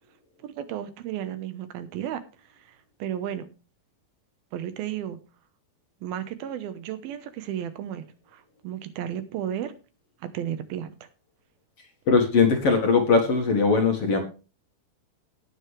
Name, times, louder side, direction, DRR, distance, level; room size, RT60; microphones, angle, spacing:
voice 1, 0.4-2.2 2.6-3.5 4.5-5.2 6.0-8.1 8.3-9.7 10.2-11.1, right 10 dB, 80° right, 11 dB, 2.9 m, -33 dB
voice 2, 12.1-14.2, left 4 dB, 50° left, 4 dB, 2.1 m, -20 dB
18.0 x 6.9 x 3.3 m, 0.33 s
omnidirectional pair, 4.3 m